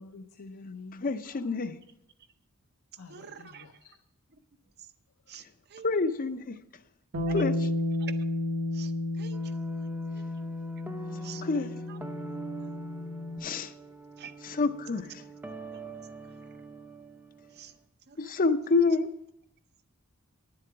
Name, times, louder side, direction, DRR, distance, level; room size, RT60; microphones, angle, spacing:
voice 1, 0.0-1.4 3.0-3.9, left 3 dB, 75° left, 0.7 m, -48 dB
voice 2, 1.0-1.8 5.8-6.6 7.3-7.5 11.4-11.7 13.4-13.7 14.4-15.1 18.2-19.1, left 4 dB, 40° left, 0.6 m, -27 dB
voice 3, 3.1-3.7 4.8-4.9 5.3-5.4 5.7-5.9 7.3-7.5 8.0-8.1 8.7-9.6 10.1-10.2 11.2-11.4 11.9-12.0 12.3-12.7 14.2-14.3 17.5-17.7 18.1-18.2, right 8 dB, 50° right, 0.7 m, -47 dB
Bass guitar, 7.1-13.4, left 2 dB, 70° right, 1.3 m, -32 dB
sound 1, 9.3-17.7, right 3 dB, 10° right, 0.6 m, -44 dB
10.5 x 7.8 x 6.0 m
head